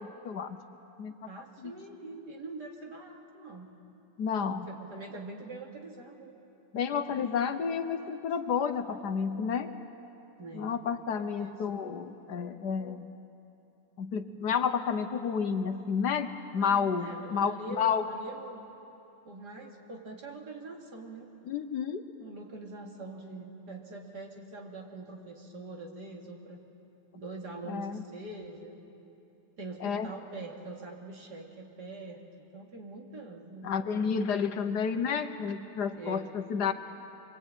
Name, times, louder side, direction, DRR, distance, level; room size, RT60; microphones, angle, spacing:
voice 1, 0.2-0.6 1.0-1.1 1.6-1.7 4.2-4.7 6.7-9.7 10.5-13.1 14.0-18.0 21.4-22.0 27.7-28.0 29.8-30.1 33.6-36.7, left 6 dB, 65° left, 8 dB, 1.4 m, -30 dB
voice 2, 1.3-3.7 4.7-6.3 6.9-7.5 10.4-10.7 11.1-11.7 16.6-18.7 19.2-21.3 22.2-26.6 27.1-28.8 29.6-34.2 35.9-36.3, right 2 dB, 60° right, 0 dB, 3.0 m, -44 dB
25.5 x 22.5 x 9.0 m, 2.9 s
omnidirectional pair, 2.0 m